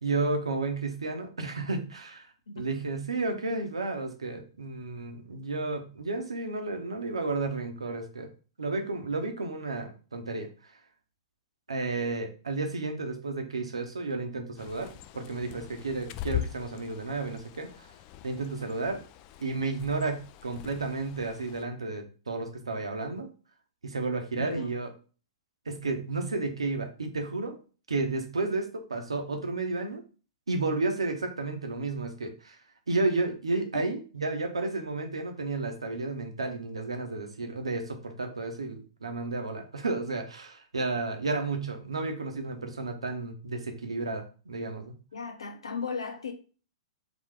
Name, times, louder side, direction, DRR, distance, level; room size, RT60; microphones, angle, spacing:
voice 1, 0.0-8.3 8.6-10.7 11.7-14.9 15.1-17.9 18.2-19.0 19.4-23.3 23.8-24.9 25.7-27.6 27.9-30.0 30.5-32.6 32.9-44.9, right 3 dB, 80° right, 4 dB, 1.0 m, -32 dB
voice 2, 2.5-2.8 24.3-24.7 33.7-33.9 45.1-46.3, left 4 dB, 75° left, 6 dB, 0.9 m, -36 dB
Bird, 14.6-21.6, left 13 dB, 35° left, 0.4 m, -41 dB
4.0 x 3.1 x 3.3 m, 0.37 s
figure-of-eight pair, 110°, 3 cm